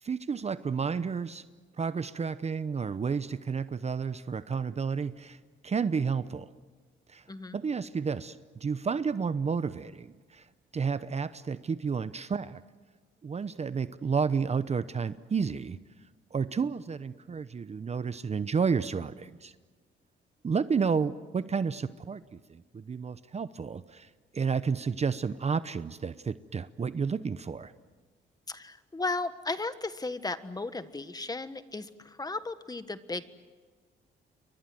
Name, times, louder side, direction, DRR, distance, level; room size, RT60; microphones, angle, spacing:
voice 1, 0.0-1.4 1.8-5.4 5.6-6.5 7.1-7.2 7.5-10.5 10.7-12.6 13.2-15.8 16.3-19.5 20.4-27.7, right 5 dB, 35° right, 14 dB, 0.8 m, -31 dB
voice 2, 28.5-33.2, left 3 dB, 20° left, 11 dB, 1.5 m, -35 dB
30.0 x 24.0 x 7.8 m, 1.4 s
cardioid pair, 90°, 20 cm